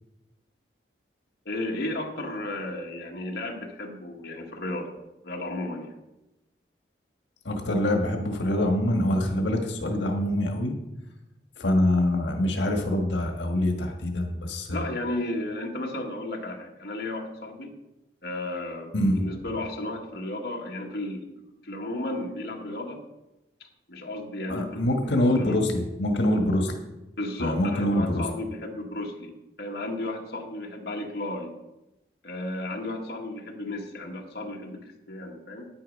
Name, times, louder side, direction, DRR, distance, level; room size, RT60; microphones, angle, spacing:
voice 1, 1.4-5.0 5.2-6.0 14.7-17.8 18.2-21.3 21.6-23.0 23.9-25.6 27.2-29.3 29.6-31.5 32.2-35.7, left 1 dB, 65° left, 0 dB, 1.6 m, -34 dB
voice 2, 7.4-10.7 11.6-14.9 18.9-19.3 24.5-26.7 27.4-28.2, left 1 dB, 85° left, 3 dB, 1.6 m, -25 dB
10.5 x 9.2 x 5.3 m, 0.95 s
head